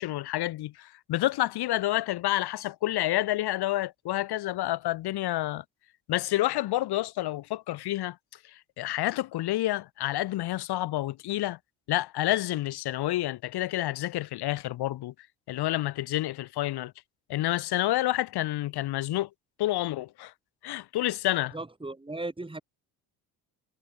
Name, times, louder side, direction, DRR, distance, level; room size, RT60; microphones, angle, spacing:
voice 1, 0.0-5.6 6.1-8.2 8.8-11.6 11.9-15.1 15.5-16.9 17.3-19.3 19.6-20.3 20.6-21.6, left 15 dB, 70° left, 1.9 m, -29 dB
voice 2, 21.5-22.6, right 2 dB, 10° right, 7.8 m, -36 dB
cardioid pair, 105°, 41 cm